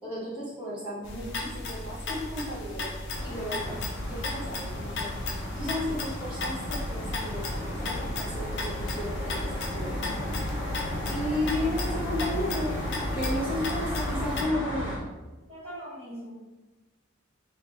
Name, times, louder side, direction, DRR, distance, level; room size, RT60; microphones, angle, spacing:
voice 1, 0.0-2.9 3.2-3.8 4.1-5.1 5.3-10.1 11.1-12.7 13.1-15.0, left 1 dB, 5° right, -11 dB, 1.4 m, -34 dB
sound 1, 1.0-14.4, left 2 dB, 55° left, 0.6 m, -36 dB
sound 2, 3.1-15.0, left 1 dB, 75° left, 1.0 m, -34 dB
sound 3, 3.5-9.1, left 1 dB, 50° right, 1.1 m, -45 dB
voice 2, 15.5-16.5, right 1 dB, 30° right, -11 dB, 1.1 m, -41 dB
2.8 x 2.5 x 3.6 m, 1.1 s
head